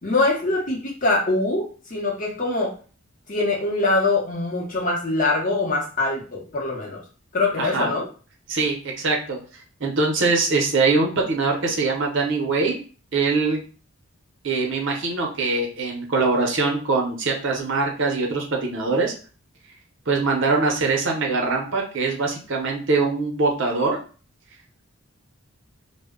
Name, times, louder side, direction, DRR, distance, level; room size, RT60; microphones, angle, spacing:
voice 1, 0.0-2.7 3.3-7.0 7.3-8.1, left 2 dB, 40° left, -2 dB, 0.7 m, -23 dB
voice 2, 7.6-7.9 8.5-9.4 9.8-12.8 13.1-13.6 14.4-19.1 20.1-24.0, right 3 dB, 60° right, 1 dB, 0.7 m, -22 dB
2.1 x 2.1 x 3.5 m, 0.38 s
head